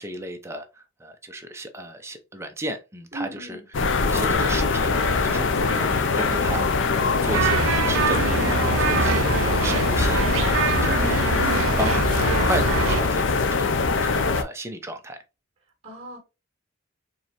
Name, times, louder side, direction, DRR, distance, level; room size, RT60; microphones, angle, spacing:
voice 1, 0.0-3.6 4.0-13.7 14.0-15.2, right 1 dB, 15° right, 0.6 m, -34 dB
voice 2, 3.1-3.6 8.8-9.1 15.8-16.2, right 1 dB, 30° right, 1.7 m, -37 dB
sound 1, 3.7-14.4, left 4 dB, 65° left, 0.6 m, -22 dB
sound 2, 7.2-13.0, right 6 dB, 85° right, 0.4 m, -25 dB
4.5 x 3.2 x 3.0 m
head